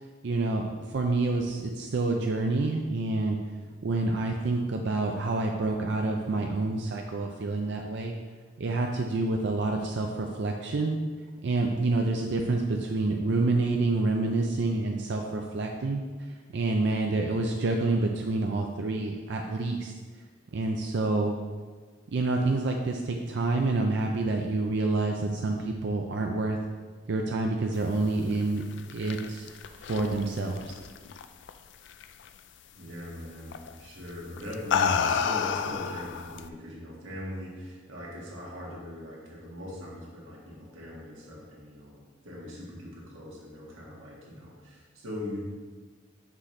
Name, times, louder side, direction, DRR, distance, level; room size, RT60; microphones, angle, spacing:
voice 1, 0.2-3.4 3.8-8.1 8.6-11.0 11.4-16.1 16.5-19.9 20.5-21.4 22.1-26.6 27.1-28.6 28.9-29.5 29.8-30.7, right 2 dB, 60° right, 2 dB, 0.4 m, -28 dB
sound 1, 28.6-31.5 31.9-32.3 33.5-33.7 34.4-36.5, left 7 dB, 60° left, 0.3 m, -29 dB
voice 2, 32.7-42.0 42.2-45.4, left 1 dB, 85° right, -5 dB, 1.8 m, -40 dB
6.1 x 5.6 x 3.3 m, 1.5 s
head